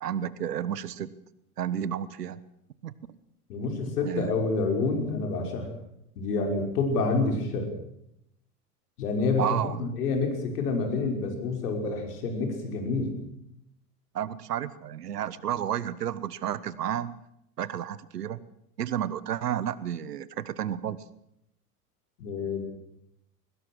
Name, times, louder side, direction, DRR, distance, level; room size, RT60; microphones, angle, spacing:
voice 1, 0.0-1.1 1.6-2.4 2.8-2.9 4.0-4.4 9.4-10.0 14.1-17.2 17.6-18.4 18.8-21.0, right 10 dB, 85° right, 18 dB, 1.3 m, -31 dB
voice 2, 3.5-5.7 6.2-7.7 9.0-9.5 9.8-13.1 22.2-22.6, left 3 dB, 75° left, 4 dB, 6.0 m, -28 dB
22.0 x 20.0 x 6.4 m, 0.79 s
hypercardioid pair, 80°, 46 cm